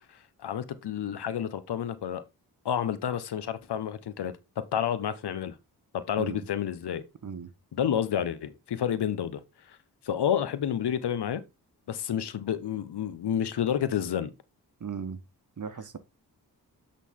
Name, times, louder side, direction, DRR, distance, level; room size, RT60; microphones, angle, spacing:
voice 1, 0.0-2.2 2.6-4.3 4.7-5.5 5.9-7.0 7.7-9.4 9.7-9.8 10.0-11.4 11.9-14.3, left 9 dB, 70° left, 1.0 m, -30 dB
voice 2, 14.8-15.2 15.6-16.0, right 6 dB, 45° right, 1.2 m, -37 dB
8.3 x 4.1 x 3.7 m
supercardioid pair, 45°, 41 cm